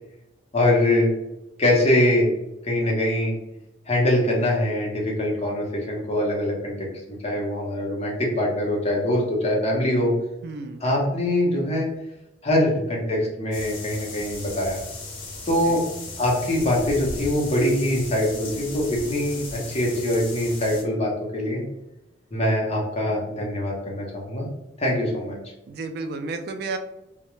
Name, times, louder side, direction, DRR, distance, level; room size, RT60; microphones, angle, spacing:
voice 1, 0.5-1.1 1.6-2.3 2.6-3.3 3.9-6.9 7.2-10.1 10.8-11.9 12.4-14.8 15.5-15.8 16.2-21.6 22.3-24.5 24.8-25.3, left 1 dB, 35° left, -2 dB, 0.7 m, -23 dB
voice 2, 10.4-10.8 15.6-15.8 25.7-26.8, right 3 dB, 55° right, 7 dB, 0.3 m, -32 dB
sound 1, 13.5-20.8, left 2 dB, 85° left, 0.9 m, -36 dB
2.3 x 2.1 x 3.0 m, 0.89 s
head